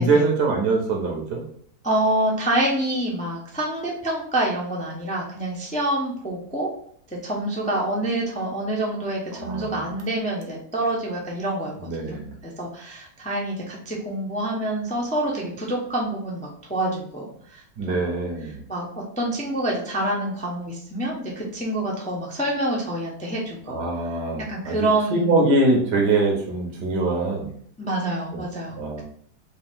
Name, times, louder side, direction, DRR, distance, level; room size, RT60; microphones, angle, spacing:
voice 1, 0.0-1.4 9.3-9.9 11.8-12.3 17.8-18.6 23.7-24.8 25.1-27.5 28.3-28.4 28.7-29.0, right 3 dB, 85° right, 1 dB, 1.6 m, -23 dB
voice 2, 1.8-6.7 7.2-18.1 18.5-18.9 19.2-23.8 24.5-25.4 27.8-29.0, right 1 dB, 10° left, -3 dB, 0.3 m, -27 dB
4.6 x 2.6 x 3.6 m, 0.62 s
omnidirectional pair, 1.8 m